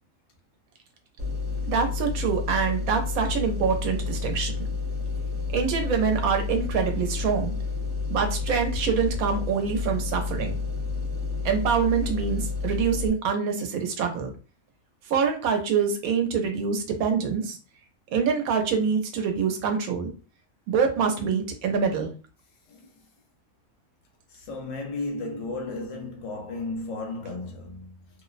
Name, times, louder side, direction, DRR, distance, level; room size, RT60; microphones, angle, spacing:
sound 1, 1.2-13.1, left 4 dB, 60° right, 0.8 m, -30 dB
voice 1, 1.6-4.5 5.5-7.5 8.1-10.5 11.4-14.3 15.1-17.6 18.1-20.1 20.7-22.1, right 6 dB, 85° right, 1.0 m, -25 dB
voice 2, 24.3-28.0, left 2 dB, 70° left, 1.0 m, -34 dB
2.6 x 2.0 x 2.4 m
omnidirectional pair, 1.4 m